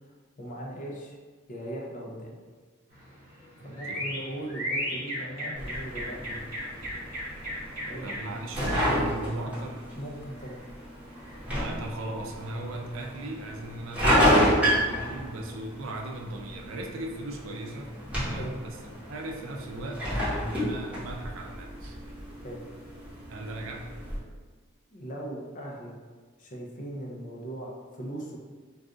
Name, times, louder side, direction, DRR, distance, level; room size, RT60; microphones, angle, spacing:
voice 1, 0.4-1.2 1.5-2.4 3.6-6.5 7.8-8.1 9.9-10.7 18.3-18.5 22.4-22.6 24.9-26.0 26.4-28.4, right 1 dB, 40° left, -2 dB, 0.5 m, -39 dB
sound 1, 2.9-8.5, equal, 45° right, 1.2 m, -36 dB
voice 2, 3.6-4.1 8.0-9.9 11.5-17.9 18.2-18.8 19.1-20.1 20.3-22.0 23.3-24.0, right 2 dB, 70° right, 1 dB, 0.4 m, -37 dB
sound 2, 5.5-24.2, equal, 5° right, 0.9 m, -30 dB
2.4 x 2.3 x 3.7 m, 1.5 s
head